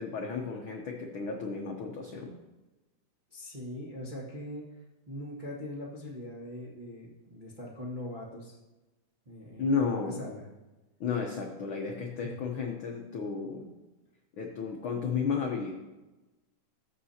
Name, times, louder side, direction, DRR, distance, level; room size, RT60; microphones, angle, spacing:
voice 1, 0.0-2.4 9.6-10.2 11.0-13.7 14.4-15.7, left 5 dB, 80° left, 1 dB, 1.1 m, -33 dB
voice 2, 3.3-4.6 5.1-8.6 9.2-10.5 12.2-12.4, left 1 dB, 25° right, -6 dB, 1.0 m, -41 dB
20.0 x 6.7 x 2.8 m, 1.1 s
omnidirectional pair, 3.7 m